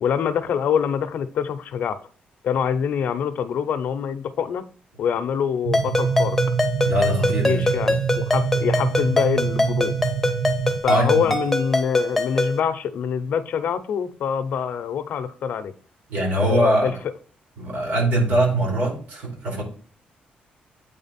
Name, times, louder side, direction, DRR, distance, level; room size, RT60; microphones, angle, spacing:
voice 1, 0.0-2.0 2.4-4.7 5.0-6.4 7.4-9.9 10.8-15.7 16.4-16.9, left 7 dB, 60° left, 11 dB, 0.6 m, -25 dB
sound 1, 5.6-10.8, right 7 dB, 50° right, 0.6 m, -25 dB
Ringtone, 5.7-12.6, left 1 dB, 5° left, 0.6 m, -24 dB
voice 2, 6.8-7.9 10.9-11.3 16.1-16.9 17.6-19.6, right 1 dB, 65° right, -2 dB, 3.2 m, -22 dB
8.6 x 3.7 x 4.1 m, 0.42 s
cardioid pair, 175°, 3 cm